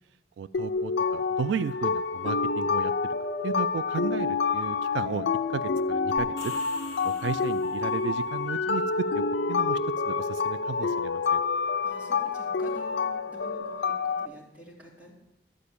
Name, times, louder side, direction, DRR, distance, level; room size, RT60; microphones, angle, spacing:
voice 1, 0.4-2.9 3.4-5.3 5.5-6.5 7.0-9.2 9.5-9.8 10.1-11.4, right 6 dB, 75° right, 14 dB, 0.3 m, -34 dB
sound 1, 0.5-14.3, left 4 dB, 75° left, 0.5 m, -28 dB
sound 2, 6.2-8.1, left 1 dB, 20° left, 5.0 m, -47 dB
voice 2, 11.8-15.1, right 1 dB, 10° right, -6 dB, 3.1 m, -48 dB
12.0 x 4.9 x 8.5 m, 0.90 s
head